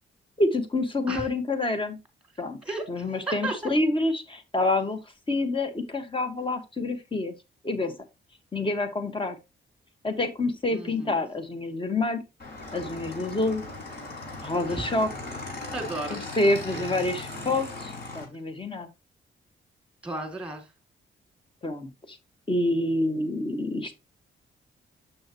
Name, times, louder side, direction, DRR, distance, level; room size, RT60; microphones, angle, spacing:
voice 1, 0.4-2.0 2.4-2.6 2.9-5.0 5.3-7.3 7.6-7.9 8.5-9.4 10.0-12.2 12.7-13.6 14.4-15.1 16.1-18.9 21.6-22.2 22.5-23.9, left 2 dB, 25° left, 7 dB, 1.6 m, -27 dB
voice 2, 2.6-3.7 10.7-11.3 14.7-14.8 15.7-16.2 16.7-16.8 20.0-20.7, right 2 dB, 5° right, 4 dB, 3.2 m, -34 dB
Motorcycle / Engine, 12.4-18.2, left 2 dB, 50° left, 5.2 m, -38 dB
7.4 x 6.3 x 3.0 m, 0.24 s
cardioid pair, 90°, 20 cm